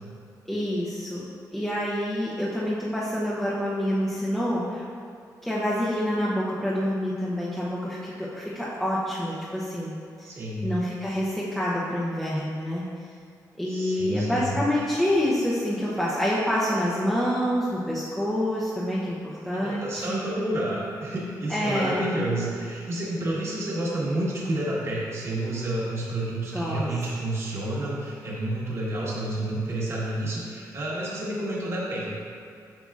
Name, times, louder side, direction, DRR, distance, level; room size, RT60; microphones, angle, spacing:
voice 1, 0.5-1.2 1.5-4.8 5.4-10.3 10.6-12.9 13.6-20.2 21.5-22.1 26.5-26.9, equal, 5° left, -7 dB, 0.7 m, -27 dB
voice 2, 10.2-10.7 13.7-14.5 19.5-32.1, right 1 dB, 40° right, -6 dB, 1.4 m, -29 dB
8.0 x 5.9 x 2.4 m, 2.3 s
cardioid pair, 130°, 7 cm